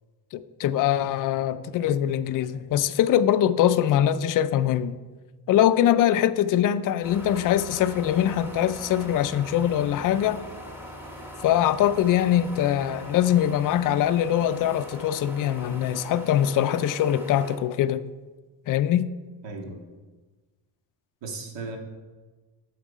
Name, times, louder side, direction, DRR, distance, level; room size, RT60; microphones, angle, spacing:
voice 1, 0.3-5.0 5.5-10.4 11.4-18.0 18.7-19.1, left 11 dB, 45° left, 12 dB, 0.4 m, -23 dB
sound 1, 7.0-17.6, equal, 5° right, 1.2 m, -41 dB
voice 2, 19.4-19.8 21.2-21.8, right 3 dB, 70° right, 2 dB, 1.8 m, -36 dB
9.0 x 7.2 x 4.9 m, 1.3 s
cardioid pair, 160°, 45 cm